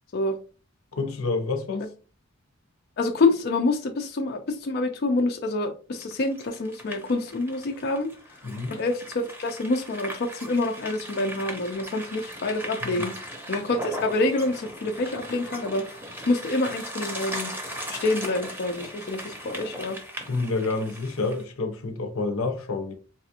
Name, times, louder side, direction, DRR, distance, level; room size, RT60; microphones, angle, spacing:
voice 1, 0.9-1.9 8.4-8.7 12.8-13.1 20.3-22.9, left 3 dB, 85° left, 0.7 m, -28 dB
voice 2, 3.0-8.1 8.7-13.1 13.5-15.9 16.3-17.5 17.9-20.0, left 2 dB, 50° left, 0.4 m, -27 dB
sound 1, 6.0-21.4, equal, 10° right, 0.7 m, -38 dB
4.0 x 2.4 x 2.8 m
head